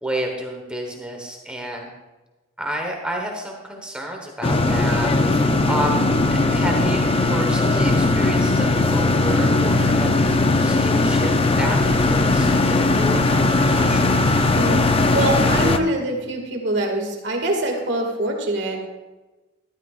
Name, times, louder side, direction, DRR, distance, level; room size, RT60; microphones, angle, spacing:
voice 1, 0.0-1.9 2.6-6.0 6.3-11.8 12.1-13.3 13.6-14.1, right 1 dB, 5° right, 1 dB, 1.2 m, -30 dB
sound 1, 4.4-15.8, left 2 dB, 30° left, 0.5 m, -18 dB
voice 2, 14.5-14.9 15.1-18.9, right 1 dB, 60° right, 1 dB, 2.0 m, -24 dB
13.0 x 13.0 x 2.5 m, 1.1 s
head